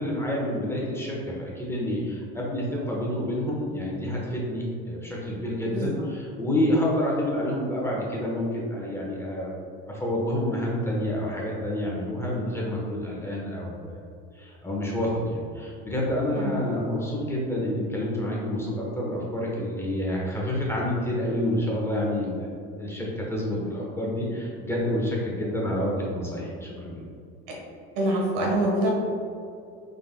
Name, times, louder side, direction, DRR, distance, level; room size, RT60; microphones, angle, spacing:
voice 1, 0.0-9.5 9.9-14.0 14.3-22.5 22.8-27.0, left 1 dB, 10° left, -4 dB, 1.2 m, -28 dB
voice 2, 27.9-28.9, right 1 dB, 75° right, -2 dB, 1.5 m, -25 dB
5.4 x 4.0 x 2.3 m, 2.4 s
supercardioid pair, 90°, 31 cm